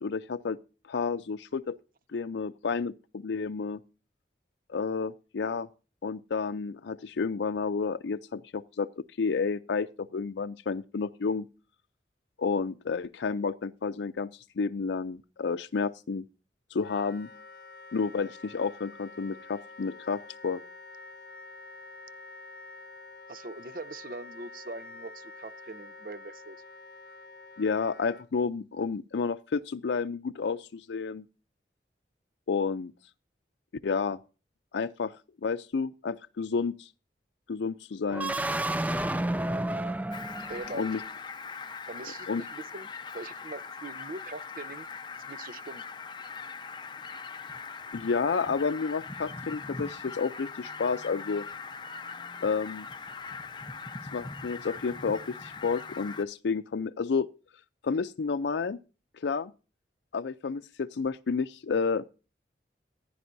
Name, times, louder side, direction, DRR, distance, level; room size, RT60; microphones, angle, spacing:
voice 1, 0.0-0.6 0.9-1.8 2.1-3.8 4.7-5.7 6.0-11.4 12.4-16.2 16.7-17.3 17.9-20.6 27.6-31.2 32.5-32.9 33.8-34.2 34.7-35.1 35.4-36.9 37.5-38.3 40.7-41.0 42.3-42.4 47.9-51.5 52.4-52.9 54.1-57.3 57.8-58.8 59.2-59.5 60.1-62.0, left 5 dB, 90° left, 0.5 m, -30 dB
Wind instrument woodwind instrument, 16.8-28.3, left 3 dB, 55° left, 1.0 m, -48 dB
voice 2, 23.3-26.6 40.5-40.9 41.9-42.9 43.1-44.9 45.1-45.8, right 2 dB, 50° right, 0.6 m, -42 dB
sound 1, 38.1-41.1, right 1 dB, 10° right, 0.4 m, -31 dB
Fowl, 40.1-56.2, left 5 dB, 25° left, 0.8 m, -41 dB
15.5 x 10.0 x 2.6 m
head